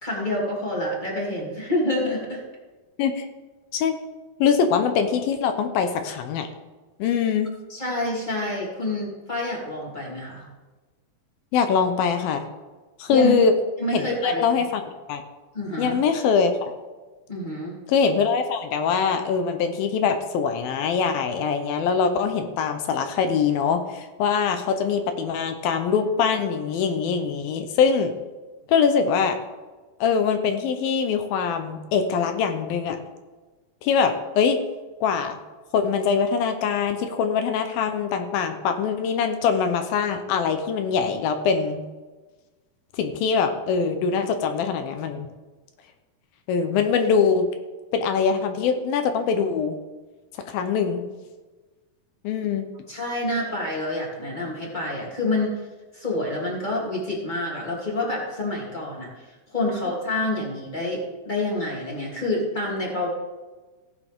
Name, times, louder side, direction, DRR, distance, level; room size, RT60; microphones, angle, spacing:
voice 1, 0.0-2.4 7.7-10.5 13.1-13.3 13.8-14.4 15.5-16.0 17.3-17.8 52.9-55.6 55.9-63.1, left 1 dB, 15° left, -4 dB, 2.6 m, -27 dB
voice 2, 4.4-6.5 7.0-7.5 11.5-12.4 13.0-13.5 13.9-14.8 15.1-15.2 15.8-16.7 17.9-28.1 28.7-29.4 30.0-33.0 33.8-34.6 35.0-35.4 35.7-41.8 43.0-45.3 46.5-47.5 47.9-49.8 50.5-51.0 52.2-52.7, left 6 dB, 75° left, 7 dB, 2.6 m, -23 dB
16.0 x 9.6 x 3.7 m, 1.2 s
omnidirectional pair, 4.4 m